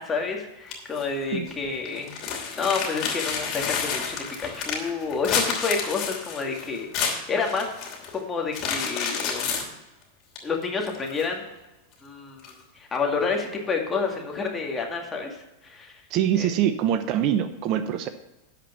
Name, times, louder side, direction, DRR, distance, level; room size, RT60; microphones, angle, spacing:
voice 1, 0.0-2.1 2.5-7.8 8.1-9.7 10.4-11.5 12.0-12.4 12.7-16.0 16.4-16.5, left 4 dB, 20° left, 1 dB, 2.1 m, -29 dB
sound 1, 0.7-1.0 1.5-1.6 1.8-8.1 8.5-9.7 10.4-10.5 10.9-11.5 12.4-12.5, left 6 dB, 45° left, 2.9 m, -29 dB
voice 2, 16.1-18.1, right 10 dB, 45° right, 11 dB, 0.7 m, -24 dB
11.5 x 5.2 x 6.8 m, 1.0 s
hypercardioid pair, 95°, 0 cm